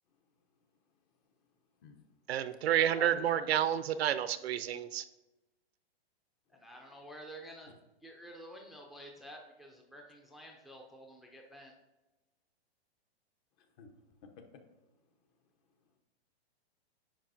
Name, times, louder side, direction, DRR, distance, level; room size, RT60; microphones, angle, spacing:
voice 1, 2.3-5.0, right 10 dB, 75° right, 13 dB, 0.6 m, -30 dB
voice 2, 2.9-3.5 13.8-13.9 14.2-14.4, left 5 dB, 40° left, 6 dB, 1.0 m, -49 dB
voice 3, 6.5-7.7 8.0-11.7, equal, ahead, 1 dB, 0.5 m, -50 dB
8.8 x 5.3 x 2.6 m, 1.0 s
hypercardioid pair, 135°, 31 cm